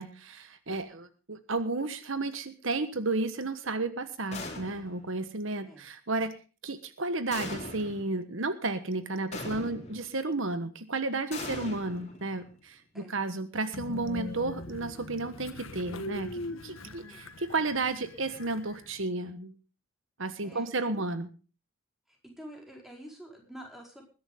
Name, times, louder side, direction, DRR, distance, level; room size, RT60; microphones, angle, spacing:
voice 1, 0.0-6.3 6.6-19.5 20.2-21.3, right 3 dB, 65° right, 11 dB, 1.3 m, -32 dB
sound 1, 4.3-5.1 7.3-8.1 9.3-10.1 11.3-12.5, left 2 dB, 30° left, 3.8 m, -40 dB
Train, 13.7-19.0, left 1 dB, 75° left, 1.6 m, -41 dB
voice 2, 16.8-17.2 20.4-21.0 22.1-24.1, equal, ahead, 0 dB, 4.5 m, -48 dB
21.0 x 11.0 x 3.7 m, 0.35 s
head